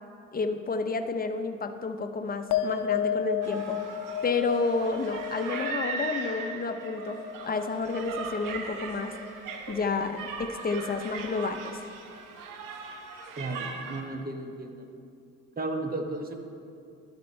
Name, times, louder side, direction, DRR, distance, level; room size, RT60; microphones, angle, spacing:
voice 1, 0.3-3.8 4.2-9.1 9.7-11.8, left 4 dB, 25° left, 8 dB, 0.6 m, -30 dB
sound 1, 2.5-9.2 9.5-10.1, left 9 dB, 70° left, 0.6 m, -34 dB
sound 2, 3.4-14.0, right 5 dB, 75° right, 0.9 m, -39 dB
voice 2, 13.4-14.9 15.6-16.3, right 2 dB, 25° right, 4 dB, 1.0 m, -34 dB
12.0 x 4.5 x 4.4 m, 2.4 s
supercardioid pair, 60°, 33 cm